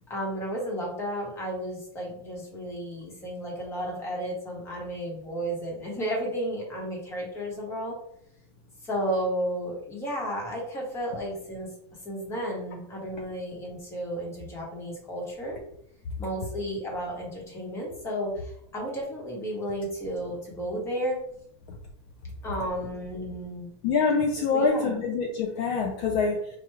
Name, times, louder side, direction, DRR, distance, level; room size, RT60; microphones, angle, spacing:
voice 1, 0.1-7.9 8.8-11.7 12.0-15.6 16.2-21.2 22.4-23.7 24.5-25.0, equal, 20° left, -1 dB, 1.1 m, -33 dB
voice 2, 23.8-26.5, left 4 dB, 50° left, 2 dB, 0.5 m, -25 dB
4.5 x 2.3 x 3.1 m, 0.72 s
supercardioid pair, 165°, 15 cm